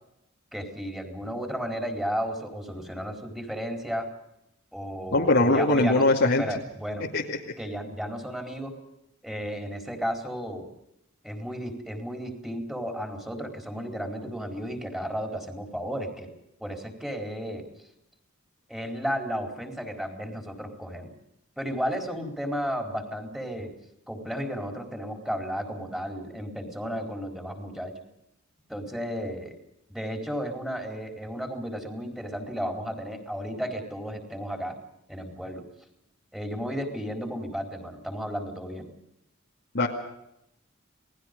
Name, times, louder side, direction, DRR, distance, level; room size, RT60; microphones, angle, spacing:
voice 1, 0.5-4.1 4.7-6.0 6.4-7.1 7.6-8.8 9.2-10.7 11.2-16.3 16.6-17.7 18.7-21.1 21.6-23.7 24.1-27.9 28.7-29.6 29.9-34.8 35.1-35.6 36.3-38.9, equal, ahead, 4 dB, 4.3 m, -33 dB
voice 2, 5.1-6.4 7.1-7.4 39.7-39.9, left 2 dB, 60° left, -3 dB, 2.4 m, -21 dB
29.0 x 19.5 x 5.3 m, 0.81 s
head